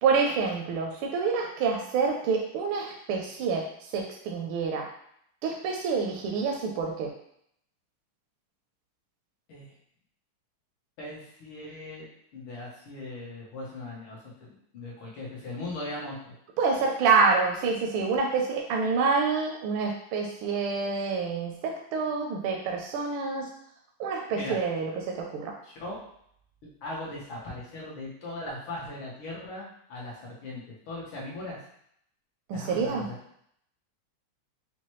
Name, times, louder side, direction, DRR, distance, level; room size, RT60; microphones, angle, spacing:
voice 1, 0.0-4.9 5.4-7.1 16.6-23.5 24.0-25.5 32.5-33.1, right 5 dB, 80° right, 1 dB, 1.4 m, -27 dB
voice 2, 11.0-12.1 12.3-16.3 24.3-24.6 25.6-26.0 26.8-31.6 32.5-33.2, left 2 dB, 75° left, -5 dB, 2.0 m, -39 dB
6.0 x 2.1 x 3.0 m, 0.71 s
omnidirectional pair, 2.3 m